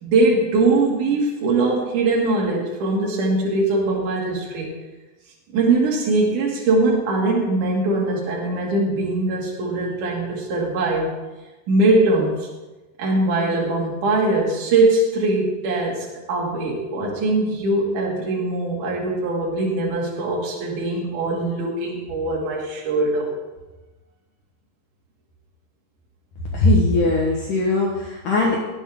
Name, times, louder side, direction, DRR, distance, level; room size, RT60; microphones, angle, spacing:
voice 1, 0.0-4.7 5.5-11.1 11.7-12.5 13.0-23.3, right 2 dB, 50° right, -2 dB, 3.5 m, -21 dB
voice 2, 26.5-28.6, left 2 dB, 70° left, -2 dB, 2.0 m, -19 dB
18.0 x 8.0 x 3.7 m, 1.1 s
omnidirectional pair, 5.4 m